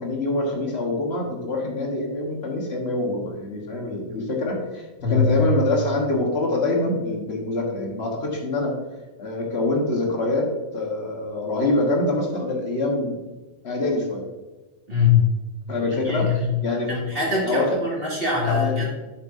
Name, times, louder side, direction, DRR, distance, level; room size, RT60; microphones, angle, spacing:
voice 1, 0.0-8.7 9.2-10.5 10.7-13.2 13.6-14.2 15.7-16.3 16.6-16.9 17.4-17.7 18.5-18.8, left 2 dB, 60° left, 0 dB, 1.7 m, -25 dB
voice 2, 5.0-5.5 14.9-15.2 16.0-16.5 16.9-18.9, left 5 dB, 50° right, -5 dB, 2.7 m, -22 dB
8.6 x 7.2 x 2.7 m, 1.2 s
omnidirectional pair, 1.3 m